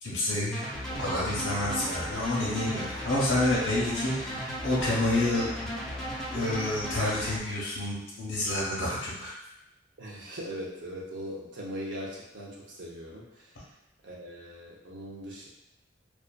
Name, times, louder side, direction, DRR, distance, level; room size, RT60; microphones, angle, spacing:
voice 1, 0.0-0.6 1.0-5.5 6.3-9.3, left 1 dB, 80° left, -6 dB, 0.7 m, -29 dB
sound 1, 0.5-7.4, equal, 5° left, 0.4 m, -36 dB
voice 2, 10.0-13.5 14.0-15.5, equal, 75° right, -3 dB, 0.6 m, -40 dB
2.4 x 2.3 x 2.2 m, 0.84 s
head